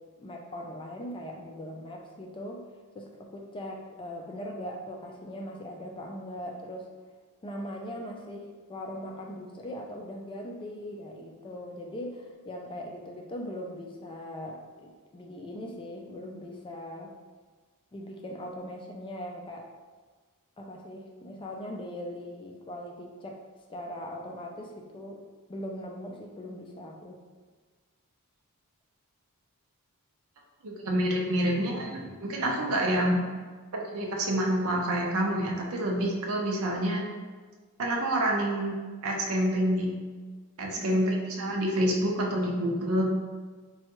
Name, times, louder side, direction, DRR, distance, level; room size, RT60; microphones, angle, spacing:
voice 1, 0.2-2.6 2.9-6.9 7.4-17.1 17.9-19.7 20.6-23.4 23.7-25.2 25.5-27.2 40.8-41.2, equal, 20° left, 1 dB, 0.3 m, -40 dB
voice 2, 30.6-33.2 33.7-37.0 37.8-38.8 39.0-40.0 40.6-43.0, right 1 dB, 70° right, 0 dB, 0.6 m, -27 dB
4.2 x 2.3 x 2.9 m, 1.4 s
head